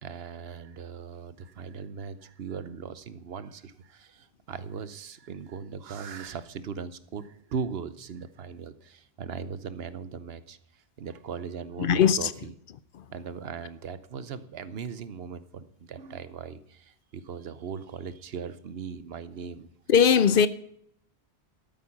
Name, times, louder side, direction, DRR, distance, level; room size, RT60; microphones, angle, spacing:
voice 1, 0.0-12.5 13.1-19.7, right 6 dB, 75° right, 1.0 m, -39 dB
voice 2, 11.8-12.3 12.9-13.0 19.9-20.5, left 7 dB, 65° left, 0.8 m, -20 dB
12.5 x 9.2 x 5.9 m
omnidirectional pair, 1.0 m